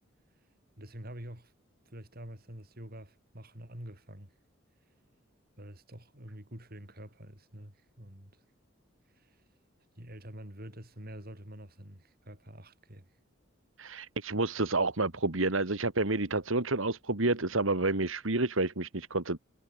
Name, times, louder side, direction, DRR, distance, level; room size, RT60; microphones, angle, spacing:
voice 1, 0.8-1.5 1.9-4.3 5.6-8.3 9.1-9.4 10.0-13.1, right 1 dB, 50° right, 6.3 m, -47 dB
voice 2, 13.8-19.4, right 2 dB, 80° right, 2.2 m, -29 dB
head